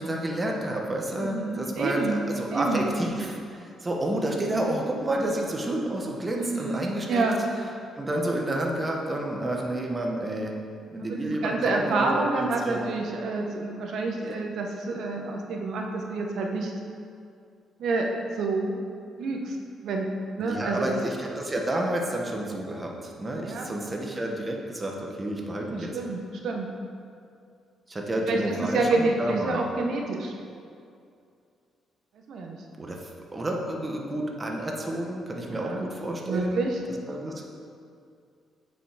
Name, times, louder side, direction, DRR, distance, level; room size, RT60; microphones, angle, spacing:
voice 1, 0.0-7.3 7.9-10.6 10.9-12.9 20.4-25.9 27.9-29.6 32.8-33.0 33.3-36.7 37.1-37.5, right 1 dB, 20° right, 0 dB, 1.2 m, -30 dB
voice 2, 1.1-2.2 2.5-2.8 4.5-4.8 6.4-7.4 11.0-16.7 17.8-18.1 18.4-18.7 19.2-19.6 19.8-20.1 20.4-20.9 23.4-23.7 25.7-26.7 28.1-30.3 32.3-32.6 35.5-35.9 36.3-36.8, right 3 dB, 70° right, 1 dB, 1.1 m, -28 dB
8.5 x 5.8 x 5.0 m, 2.4 s
cardioid pair, 90°, 0 cm